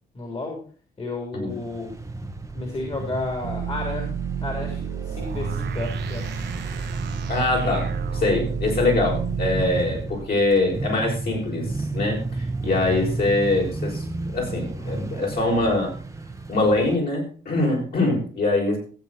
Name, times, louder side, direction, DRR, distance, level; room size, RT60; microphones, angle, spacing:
voice 1, 0.1-0.6 1.0-2.0 2.5-4.1 4.4-6.3 12.6-12.9, left 2 dB, 30° left, 1 dB, 3.5 m, -32 dB
sound 1, 1.5-16.9, right 3 dB, 15° right, 1.2 m, -32 dB
sound 2, 3.4-9.6, right 7 dB, 60° right, 1.3 m, -31 dB
voice 2, 7.3-11.7 11.9-14.0 14.3-15.9 16.5-18.8, left 2 dB, 50° left, -1 dB, 6.5 m, -23 dB
15.0 x 8.2 x 4.3 m, 0.39 s
cardioid pair, 90°, 20 cm